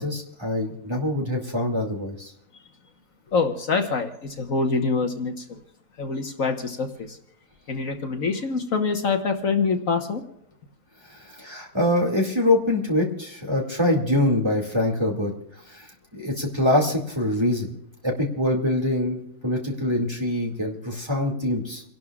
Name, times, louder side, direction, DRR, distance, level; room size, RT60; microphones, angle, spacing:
voice 1, 0.0-2.3 11.1-15.3 15.7-15.9 16.1-17.7 18.0-21.8, left 1 dB, 15° right, 0 dB, 2.4 m, -24 dB
voice 2, 3.3-5.6 6.0-7.2 7.7-10.2, left 4 dB, 60° left, 4 dB, 1.6 m, -25 dB
29.5 x 12.0 x 2.4 m, 0.73 s
omnidirectional pair, 1.6 m